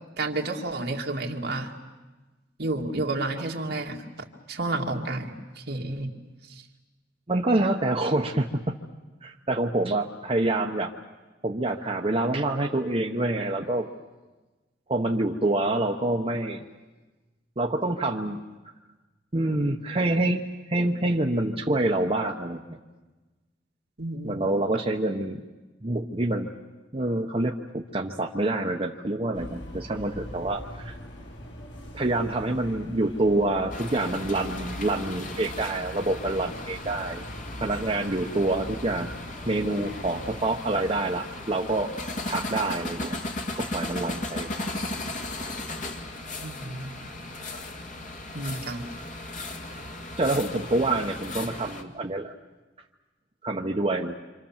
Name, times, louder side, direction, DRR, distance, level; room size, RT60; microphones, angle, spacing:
voice 1, 0.2-1.7 2.6-4.0 4.5-6.1 6.4-6.7 24.0-24.5 46.4-46.9 48.3-48.8, right 2 dB, 60° right, 1 dB, 2.3 m, -31 dB
voice 2, 7.3-8.8 9.2-10.9 11.4-13.9 14.9-16.6 17.6-18.4 19.3-20.4 20.7-22.8 24.2-25.4 25.8-26.5 26.9-30.9 31.9-37.2 37.6-39.1 39.5-41.9 42.3-43.2 43.6-44.5 50.2-52.3 53.4-54.1, right 2 dB, 30° right, 1 dB, 1.0 m, -26 dB
sound 1, 29.3-40.4, equal, 75° left, 3.4 m, -42 dB
sound 2, 33.7-51.8, left 2 dB, 45° left, 1.9 m, -36 dB
27.5 x 26.5 x 7.3 m, 1.2 s
head